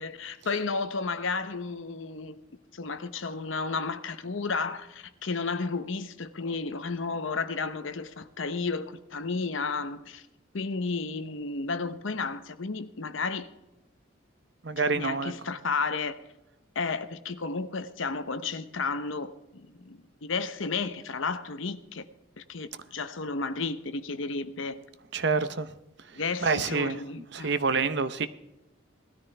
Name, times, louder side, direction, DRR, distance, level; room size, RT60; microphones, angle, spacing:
voice 1, 0.0-2.4 2.7-10.2 10.5-13.5 14.9-16.2 16.7-22.1 22.4-24.8 26.1-27.5, left 4 dB, 70° left, 0.9 m, -32 dB
voice 2, 14.6-15.3 25.1-25.7 26.0-27.0 27.3-28.3, right 4 dB, 55° right, 0.7 m, -27 dB
18.0 x 13.5 x 3.4 m
head